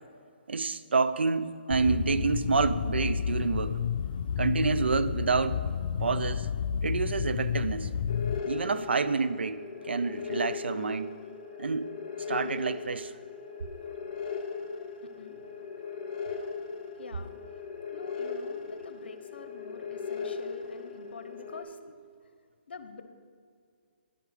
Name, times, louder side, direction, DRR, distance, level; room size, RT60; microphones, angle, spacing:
voice 1, 0.5-3.8 4.4-5.7 6.0-6.5 6.8-7.9 8.4-11.1 11.6-11.9 12.3-13.1, right 4 dB, 80° right, 0.5 m, -28 dB
sound 1, 1.7-8.4, left 7 dB, 55° left, 0.4 m, -31 dB
sound 2, 8.1-21.6, left 5 dB, 40° left, 1.1 m, -38 dB
voice 2, 12.3-12.6 13.8-22.3 22.7-23.0, left 4 dB, 70° left, 0.9 m, -49 dB
10.0 x 8.6 x 5.0 m
hypercardioid pair, 145°, 6 cm